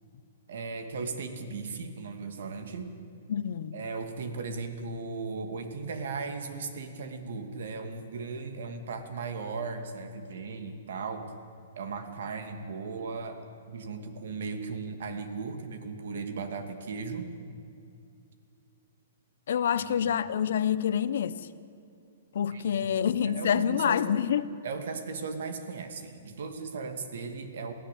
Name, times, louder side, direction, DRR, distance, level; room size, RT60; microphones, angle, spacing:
voice 1, 0.5-2.9 3.7-11.3 11.8-17.3 19.7-20.2 22.5-24.0 24.6-27.7, right 4 dB, 70° right, 2.6 m, -37 dB
voice 2, 3.3-3.8 19.5-21.5 22.3-24.5, left 8 dB, 70° left, 1.0 m, -27 dB
23.0 x 16.0 x 8.5 m
hypercardioid pair, 160°, 0 cm